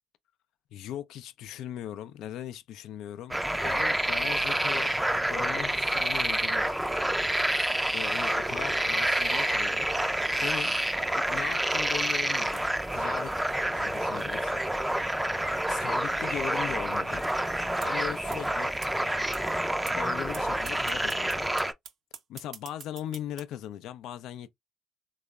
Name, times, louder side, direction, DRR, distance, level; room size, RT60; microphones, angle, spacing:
voice 1, 0.7-3.4 3.6-4.9 5.3-6.8 7.9-9.9 10.4-10.7 11.1-12.6 12.9-13.3 13.7-14.6 15.7-17.3 17.8-18.7 19.9-21.4 22.3-24.5, left 11 dB, 70° left, 0.3 m, -39 dB
sound 1, 3.3-21.7, right 1 dB, 10° right, 0.4 m, -28 dB
sound 2, 17.8-17.9 18.3-18.4 18.8-18.9 19.3-19.4 19.9-20.0 20.3-20.4 20.7-23.4, right 7 dB, 60° right, 0.5 m, -43 dB
3.3 x 2.0 x 2.3 m
hypercardioid pair, 60°, 0 cm